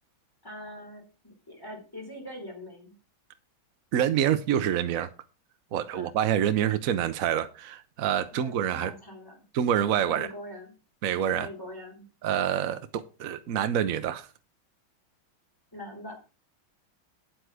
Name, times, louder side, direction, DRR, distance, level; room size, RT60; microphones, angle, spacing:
voice 1, 0.4-2.9 5.9-6.1 8.3-9.4 10.1-10.7 11.3-12.0 15.7-16.1, left 1 dB, 10° left, 3.4 m, -42 dB
voice 2, 3.9-5.1 5.7-8.9 9.5-10.3 11.0-11.5 12.2-14.3, right 10 dB, 70° right, 0.8 m, -27 dB
9.2 x 8.0 x 4.8 m
omnidirectional pair, 2.2 m